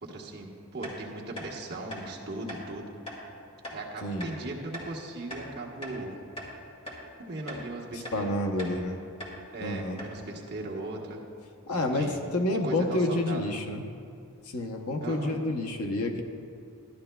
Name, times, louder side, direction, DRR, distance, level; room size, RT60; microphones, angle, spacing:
voice 1, 0.0-2.9 3.7-6.2 7.2-8.5 9.5-11.2 11.7-12.2 12.5-13.6 15.0-15.4, right 2 dB, 45° right, -3 dB, 1.3 m, -38 dB
sound 1, 0.8-1.0 1.4-1.5 1.9-2.0 2.5-2.6 3.1-3.2 3.6-3.8 4.2-4.4 4.7-4.9 5.3-6.0 6.4-6.5 6.9-7.0 7.5-7.7 8.0-8.2 8.6-8.8 9.2-9.4 9.6-9.7 10.0-10.2, equal, 25° left, 1.9 m, -40 dB
voice 2, 8.1-9.0 9.6-10.0 11.7-13.8 14.5-16.2, left 1 dB, 80° left, 3 dB, 0.8 m, -29 dB
13.0 x 11.5 x 2.3 m, 2.4 s
head